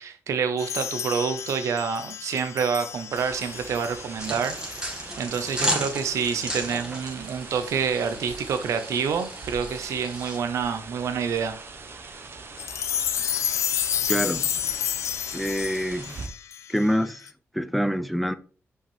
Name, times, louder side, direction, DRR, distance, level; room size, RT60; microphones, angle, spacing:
voice 1, 0.0-4.9 5.2-11.6, right 6 dB, 85° right, 0.8 m, -27 dB
sound 1, 0.6-5.0 5.3-5.5 6.2-6.4 7.6-7.7 8.3-8.4 9.7-9.8 12.6-17.3, left 9 dB, 85° left, 0.4 m, -31 dB
sound 2, 3.1-16.3, right 4 dB, 50° right, 1.1 m, -42 dB
sound 3, 4.2-10.4, equal, 15° right, 1.9 m, -34 dB
voice 2, 14.1-14.5 15.3-16.2 16.7-17.3 17.5-18.4, equal, ahead, 0.5 m, -26 dB
5.9 x 5.5 x 3.4 m
cardioid pair, 85°, 5 cm